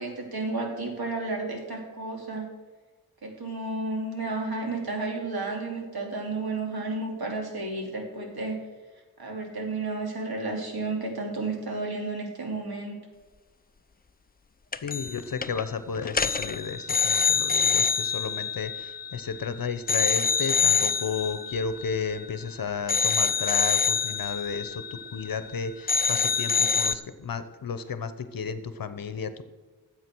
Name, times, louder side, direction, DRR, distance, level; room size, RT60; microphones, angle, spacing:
voice 1, 0.0-2.5 3.2-8.6 9.2-13.0, right 3 dB, 70° right, 1 dB, 3.1 m, -32 dB
sound 1, 14.7-15.2 15.4-15.6 16.1-19.4 19.9-22.5 22.9-25.6 25.9-27.0, left 6 dB, 25° left, 0.6 m, -26 dB
voice 2, 14.8-29.4, left 6 dB, 60° left, 12 dB, 1.0 m, -33 dB
13.0 x 8.0 x 6.2 m, 1.3 s
wide cardioid pair, 90°, 38 cm